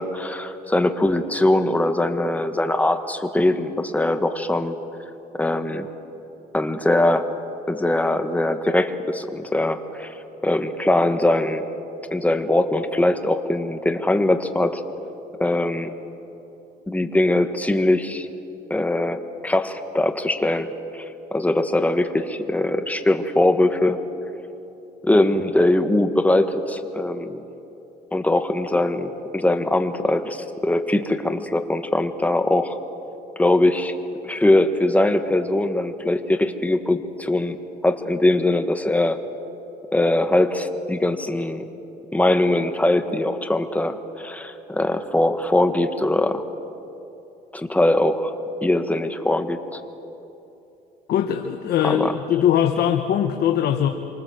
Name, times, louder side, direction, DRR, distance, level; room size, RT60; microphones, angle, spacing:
voice 1, 0.0-4.8 5.3-5.9 6.5-7.3 7.7-10.2 10.4-11.6 12.1-14.8 15.4-15.9 16.9-18.3 18.7-21.0 21.3-24.0 25.0-27.4 28.1-32.8 33.4-33.9 34.2-39.2 39.9-41.7 42.1-46.4 47.5-48.3 48.6-49.8 51.8-52.1, left 1 dB, 10° left, 7 dB, 1.6 m, -21 dB
voice 2, 51.1-53.9, left 9 dB, 70° left, 5 dB, 1.3 m, -21 dB
27.0 x 25.0 x 7.9 m, 2.9 s
cardioid pair, 110°, 17 cm